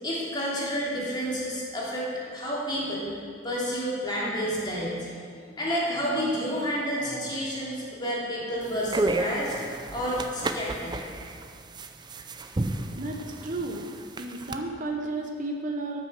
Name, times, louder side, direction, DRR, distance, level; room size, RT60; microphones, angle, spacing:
voice 1, 0.0-3.1 3.4-9.6 9.9-11.0, equal, 20° left, -6 dB, 2.7 m, -30 dB
sound 1, 8.6-14.6, right 2 dB, 20° right, 0.5 m, -32 dB
voice 2, 13.0-13.8 14.2-16.1, right 2 dB, 40° right, 1 dB, 0.8 m, -33 dB
13.0 x 6.2 x 6.6 m, 2.2 s
head